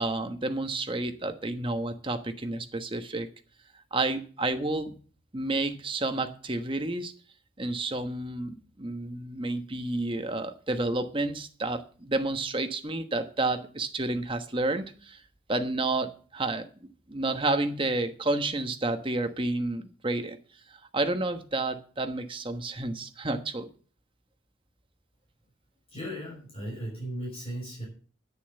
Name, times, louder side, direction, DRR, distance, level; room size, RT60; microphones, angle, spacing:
voice 1, 0.0-3.3 3.9-5.0 5.3-7.1 7.6-15.2 15.5-20.4 20.7-23.7, right 2 dB, 25° right, 7 dB, 1.1 m, -30 dB
voice 2, 25.9-27.9, right 1 dB, 30° left, -3 dB, 5.9 m, -36 dB
11.0 x 7.0 x 7.9 m, 0.40 s
head